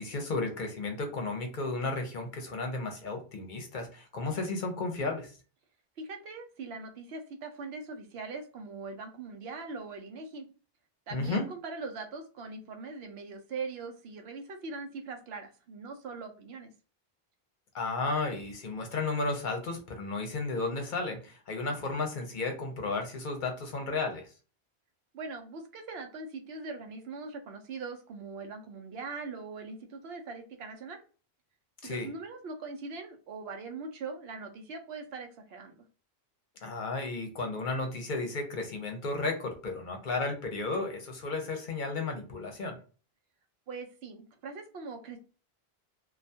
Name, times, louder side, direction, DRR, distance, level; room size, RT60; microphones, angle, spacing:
voice 1, 0.0-5.3 11.1-11.4 17.7-24.3 31.8-32.1 36.6-42.8, left 3 dB, 60° left, 4 dB, 0.7 m, -33 dB
voice 2, 6.0-10.5 11.1-16.7 25.1-31.0 31.8-35.8 43.7-45.2, right 4 dB, 80° right, 5 dB, 0.8 m, -41 dB
2.3 x 2.2 x 2.6 m, 0.36 s
omnidirectional pair, 1.0 m